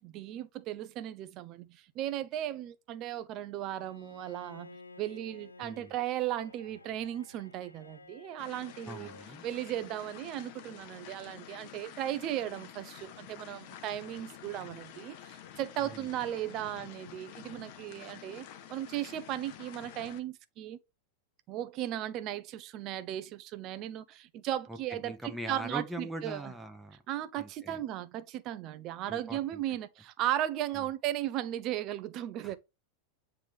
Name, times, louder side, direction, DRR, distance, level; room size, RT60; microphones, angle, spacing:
voice 1, 0.0-9.1 9.4-18.4 18.7-20.8 21.5-26.5 27.1-32.6, right 12 dB, 40° right, 0.6 m, -36 dB
Bowed string instrument, 3.8-9.3, left 3 dB, 80° left, 0.6 m, -53 dB
voice 2, 5.6-5.9 8.9-9.4 15.8-16.1 24.7-27.0 27.4-27.8 29.1-29.6 30.7-30.8 32.4-32.6, right 1 dB, 5° right, 0.9 m, -42 dB
sound 1, 8.4-20.2, left 10 dB, 45° left, 0.9 m, -49 dB
8.6 x 3.4 x 3.5 m
figure-of-eight pair, 90°, 0 cm